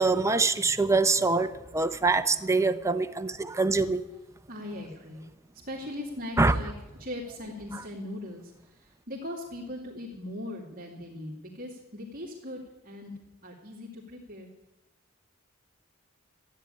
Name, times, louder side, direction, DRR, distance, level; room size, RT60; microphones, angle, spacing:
voice 1, 0.0-4.0 6.4-6.5, right 3 dB, 15° right, 0.7 m, -24 dB
voice 2, 4.5-5.2 5.6-6.7 7.0-13.1 13.4-14.5, left 1 dB, 45° right, 2.5 m, -39 dB
13.5 x 9.9 x 9.0 m
head